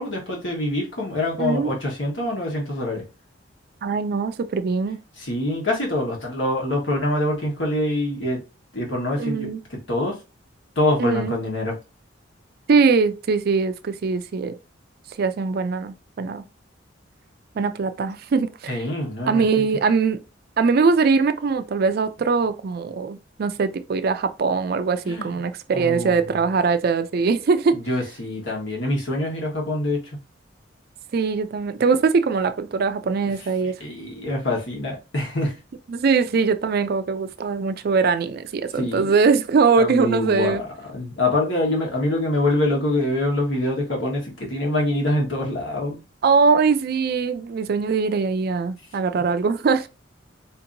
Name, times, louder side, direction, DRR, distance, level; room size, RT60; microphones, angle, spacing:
voice 1, 0.0-3.0 5.2-8.4 8.7-10.1 10.7-11.7 18.7-19.4 25.0-25.4 25.7-26.3 27.7-30.2 33.6-35.6 38.7-39.1 39.8-46.0, left 1 dB, 75° left, 1.4 m, -25 dB
voice 2, 1.4-1.8 3.8-5.0 9.2-9.6 11.0-11.4 12.7-14.6 15.2-16.4 17.6-18.8 19.3-20.2 20.6-27.8 31.1-33.8 35.9-40.6 46.2-49.9, right 4 dB, 55° right, 0.4 m, -21 dB
4.3 x 2.9 x 2.6 m
head